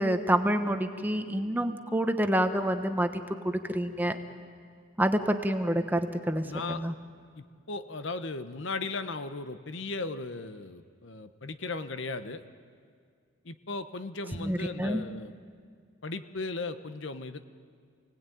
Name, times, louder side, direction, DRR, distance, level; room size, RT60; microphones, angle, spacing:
voice 1, 0.0-4.2 5.0-6.9 14.4-15.0, right 1 dB, 10° right, 7 dB, 1.1 m, -28 dB
voice 2, 6.4-6.8 7.4-12.4 13.4-15.4 16.0-17.4, left 3 dB, 65° left, 10 dB, 1.0 m, -37 dB
28.0 x 18.5 x 9.3 m, 2.1 s
head